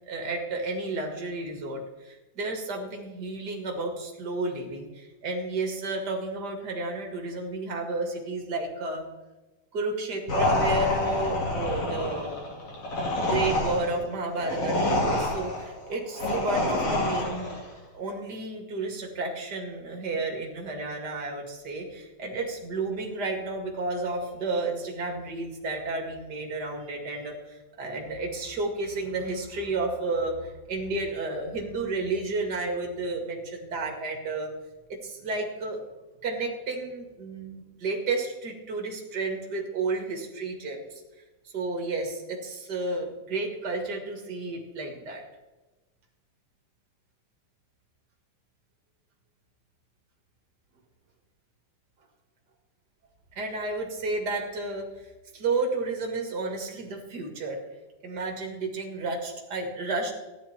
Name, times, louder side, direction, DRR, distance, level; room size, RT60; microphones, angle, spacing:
voice 1, 0.0-9.0 9.7-12.3 13.2-17.5 17.9-34.5 34.9-35.8 36.2-41.0 41.4-45.2 53.3-54.9 55.3-57.6 58.0-60.1, right 3 dB, 40° right, 1 dB, 1.5 m, -32 dB
sound 1, 10.3-17.7, left 1 dB, 40° left, 3.3 m, -27 dB
14.5 x 11.0 x 4.4 m, 1.1 s
omnidirectional pair, 4.7 m